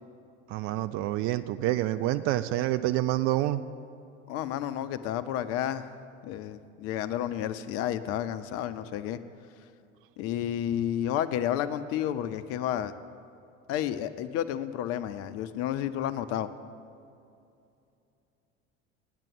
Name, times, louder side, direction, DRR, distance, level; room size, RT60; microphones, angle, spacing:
voice 1, 0.5-3.6, right 15 dB, 40° right, 12 dB, 0.4 m, -27 dB
voice 2, 4.3-5.9 6.2-9.2 10.2-12.9 13.7-16.5, left 11 dB, 40° left, 12 dB, 0.5 m, -31 dB
8.9 x 8.9 x 8.1 m, 2.6 s
figure-of-eight pair, 65°, 36 cm